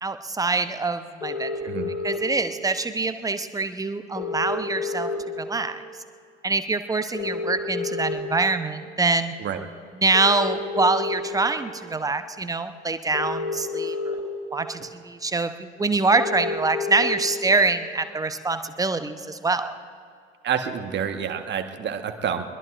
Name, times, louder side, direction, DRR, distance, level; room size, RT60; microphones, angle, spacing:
voice 1, 0.0-1.5 2.0-5.1 5.4-5.8 6.4-9.3 9.9-14.2 14.5-19.8, right 3 dB, 10° right, 10 dB, 0.8 m, -25 dB
sound 1, 1.2-2.2 4.2-5.2 7.1-8.2 10.1-11.2 13.1-14.2 16.1-17.2, left 4 dB, 85° left, 4.5 m, -29 dB
voice 2, 20.4-22.4, right 7 dB, 30° right, 7 dB, 1.3 m, -28 dB
24.0 x 21.5 x 2.6 m, 2.3 s
figure-of-eight pair, 70°, 36 cm